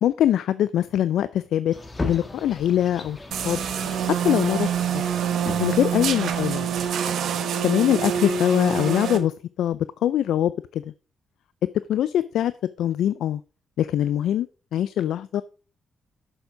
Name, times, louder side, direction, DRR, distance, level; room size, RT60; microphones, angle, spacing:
voice 1, 0.0-1.8 2.0-3.2 3.4-3.6 4.2-5.0 5.6-6.7 7.6-9.3 9.6-10.8 11.9-12.5 12.8-13.4 13.8-15.4, left 11 dB, 85° left, 16 dB, 0.4 m, -23 dB
sound 1, 1.7-6.9, left 2 dB, 25° left, 1.6 m, -36 dB
sound 2, 3.3-9.2, right 8 dB, 80° right, 1.1 m, -26 dB
8.1 x 7.1 x 5.0 m, 0.35 s
cardioid pair, 80°, 0 cm